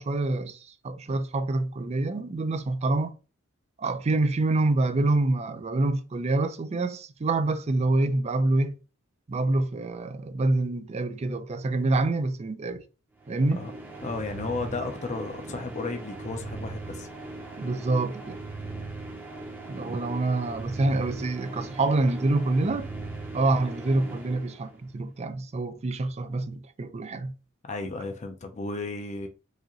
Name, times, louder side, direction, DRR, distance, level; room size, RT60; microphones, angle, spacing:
voice 1, 0.0-3.1 3.8-8.8 9.3-12.8 13.3-13.7 17.6-18.4 19.7-22.9 23.3-27.3, right 2 dB, 30° right, 0.4 m, -26 dB
sound 1, 13.2-25.1, right 2 dB, 10° right, 0.7 m, -39 dB
voice 2, 14.0-17.1 27.7-29.3, left 3 dB, 35° left, 0.5 m, -34 dB
4.8 x 2.5 x 2.9 m
head